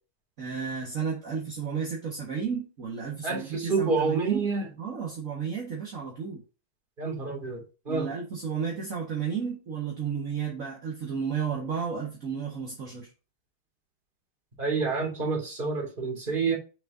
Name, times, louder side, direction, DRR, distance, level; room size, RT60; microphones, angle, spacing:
voice 1, 0.4-4.5 4.8-6.4 7.9-13.1, right 6 dB, 50° right, 2.0 m, -32 dB
voice 2, 3.2-4.7 7.0-8.1 14.6-16.6, right 4 dB, 25° right, 2.8 m, -28 dB
6.7 x 6.0 x 2.7 m
omnidirectional pair, 2.0 m